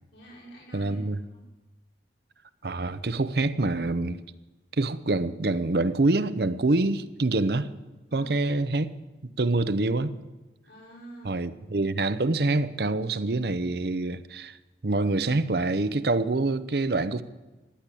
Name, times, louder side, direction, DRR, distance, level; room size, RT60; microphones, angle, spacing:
voice 1, 0.1-1.4 8.1-8.4 10.7-11.4, right 1 dB, 90° left, -7 dB, 5.7 m, -48 dB
voice 2, 0.7-1.2 2.6-4.2 4.8-7.7 8.1-8.9 9.4-10.1 11.2-14.6 14.8-17.2, right 2 dB, 60° right, 14 dB, 0.7 m, -26 dB
16.0 x 10.5 x 8.4 m, 1.1 s
head